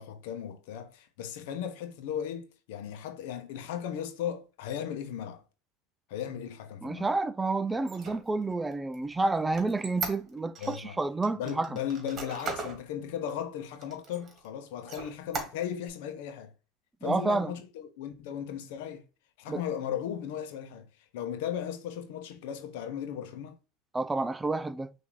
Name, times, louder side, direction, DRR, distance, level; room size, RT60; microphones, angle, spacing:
voice 1, 0.0-5.4 6.1-7.1 10.6-11.0 11.4-16.5 17.0-19.0 19.4-23.6, left 9 dB, 75° left, 0.8 m, -36 dB
voice 2, 6.8-11.7 17.0-17.5 19.5-19.6 23.9-24.9, right 3 dB, 15° right, 0.3 m, -29 dB
Squeak, 7.8-10.8 11.2-12.8 13.3-13.4 13.8-14.5 14.8-15.9, right 4 dB, 35° right, 1.5 m, -38 dB
5.8 x 2.7 x 3.0 m
hypercardioid pair, 100°, 0 cm